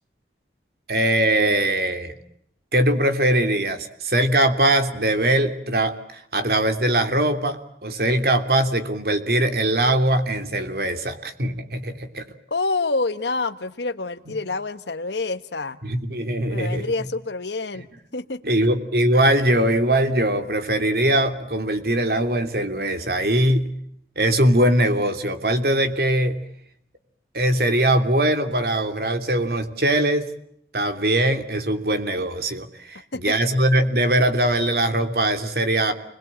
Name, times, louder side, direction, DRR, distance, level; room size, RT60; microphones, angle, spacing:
voice 1, 0.9-2.1 2.7-12.2 14.3-14.4 15.8-16.8 18.4-23.7 24.2-26.4 27.3-30.3 30.7-35.9, right 1 dB, 60° right, 8 dB, 3.0 m, -21 dB
voice 2, 12.5-15.8 16.5-17.9 18.1-18.4 33.1-33.6, left 3 dB, 80° left, 10 dB, 1.3 m, -27 dB
29.5 x 22.0 x 8.8 m, 0.72 s
head